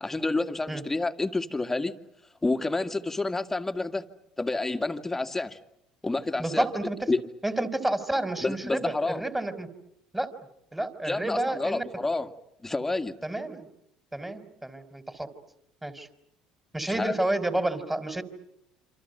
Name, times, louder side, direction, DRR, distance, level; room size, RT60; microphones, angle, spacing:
voice 1, 0.0-1.9 2.4-4.0 4.4-5.6 6.0-6.7 7.1-7.2 8.4-9.2 11.0-12.3 12.6-13.1 16.9-17.2, left 2 dB, 15° left, 7 dB, 2.0 m, -29 dB
voice 2, 6.4-7.1 7.4-9.7 10.1-10.3 10.7-11.8 13.2-13.6 14.1-15.3 15.8-16.1 16.7-18.2, right 1 dB, 10° right, 10 dB, 3.9 m, -30 dB
27.5 x 27.0 x 7.9 m, 0.78 s
hypercardioid pair, 75°, 2 cm